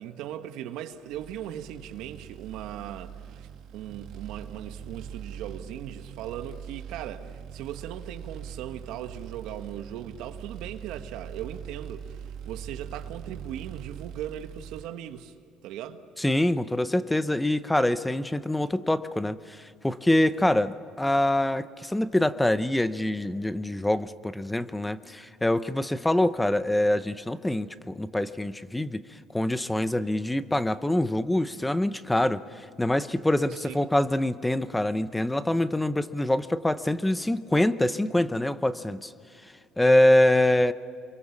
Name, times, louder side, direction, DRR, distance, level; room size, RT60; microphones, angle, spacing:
voice 1, 0.0-15.3 15.6-16.0 33.5-33.9, right 11 dB, 80° right, 1.5 m, -39 dB
sound 1, 1.1-14.9, right 8 dB, 60° right, 1.4 m, -42 dB
voice 2, 16.2-29.0 29.3-32.4 32.8-39.1 39.8-40.7, left 1 dB, 5° left, 0.7 m, -25 dB
28.5 x 23.5 x 7.3 m
cardioid pair, 145°, 0 cm